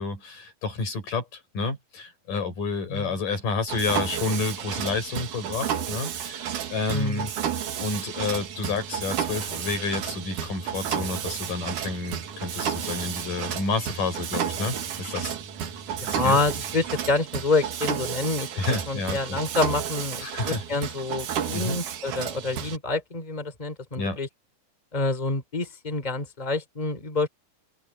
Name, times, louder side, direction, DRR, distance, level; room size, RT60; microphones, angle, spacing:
voice 1, 0.0-7.3 7.8-15.4 16.1-16.4 18.6-19.4 20.2-20.6 21.5-21.8 24.0-24.2, left 4 dB, 90° left, 8.5 m, -30 dB
Mechanisms, 3.7-22.8, right 9 dB, 75° right, 3.3 m, -32 dB
voice 2, 6.9-7.3 16.0-18.5 18.9-24.3 24.9-27.3, left 3 dB, 10° left, 3.3 m, -27 dB
open air
omnidirectional pair, 3.7 m